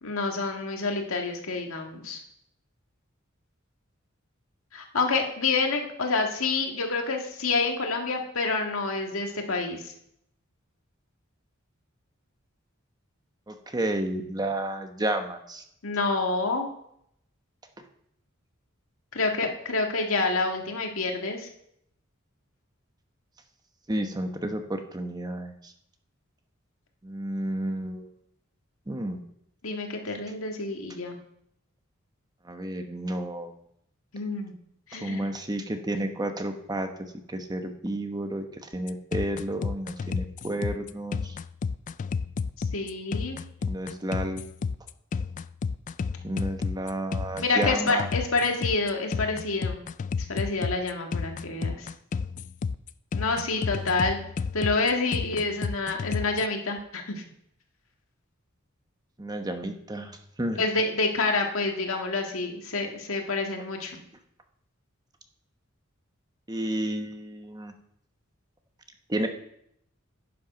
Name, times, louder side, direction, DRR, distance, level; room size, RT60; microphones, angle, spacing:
voice 1, 0.0-2.2 4.7-9.9 15.8-16.7 19.1-21.5 29.6-31.2 34.1-34.5 34.9-35.3 42.7-43.4 47.4-49.8 50.3-51.9 53.1-54.2 54.5-57.2 60.6-64.0, left 3 dB, 90° left, 2 dB, 1.8 m, -28 dB
voice 2, 13.5-15.6 23.9-25.7 27.0-28.1 28.9-29.2 32.4-33.6 35.0-36.9 37.3-41.4 43.6-44.4 46.2-48.1 59.2-60.6 66.5-67.7 69.1-69.3, right 1 dB, 20° right, 6 dB, 1.0 m, -31 dB
sound 1, 38.7-56.5, left 5 dB, 40° left, 0.3 m, -31 dB
11.0 x 8.6 x 5.1 m, 0.74 s
head